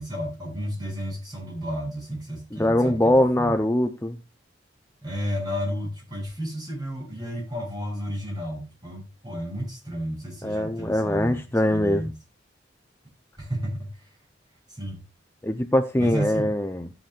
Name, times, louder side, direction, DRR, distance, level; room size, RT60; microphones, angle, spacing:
voice 1, 0.0-3.6 5.0-11.4 11.7-12.1 13.4-14.1 14.7-15.0 16.0-16.5, equal, 20° right, 7.5 m, -32 dB
voice 2, 2.5-4.2 10.4-12.1 15.4-16.9, left 1 dB, 15° left, 0.6 m, -22 dB
17.0 x 7.9 x 2.4 m
head